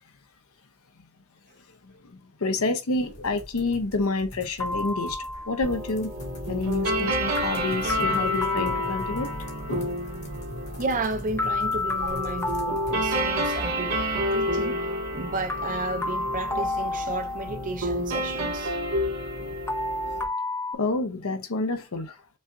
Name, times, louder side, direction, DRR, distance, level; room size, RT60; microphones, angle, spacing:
voice 1, 1.7-6.1 6.5-9.3 9.7-10.0 14.5-14.7 17.1-17.2 19.1-19.2 20.1-20.2 20.7-22.2, left 3 dB, 70° left, 0.7 m, -29 dB
sound 1, 2.9-12.9, left 1 dB, 30° left, 1.1 m, -43 dB
sound 2, 4.6-5.7 7.4-9.7 11.4-13.7 15.5-17.8 19.7-20.7, left 3 dB, 10° left, 0.4 m, -30 dB
sound 3, 5.6-20.2, equal, 70° right, 1.7 m, -30 dB
voice 2, 10.8-14.0 14.3-14.8 15.1-18.7, right 3 dB, 35° right, 0.7 m, -32 dB
5.5 x 2.4 x 2.5 m
head